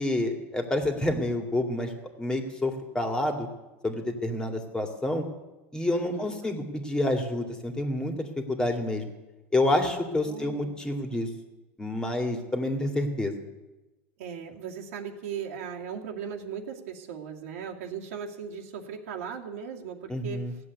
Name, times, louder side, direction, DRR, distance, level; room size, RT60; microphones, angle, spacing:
voice 1, 0.0-1.9 2.2-3.5 3.8-5.2 5.7-8.1 8.5-9.1 9.5-11.3 11.8-13.3 20.1-20.5, left 1 dB, 10° left, 4 dB, 2.2 m, -28 dB
voice 2, 5.9-6.6 10.2-10.9 14.2-20.4, right 7 dB, 85° right, -1 dB, 2.4 m, -38 dB
16.0 x 8.0 x 9.6 m, 1.1 s
supercardioid pair, 120°, 7 cm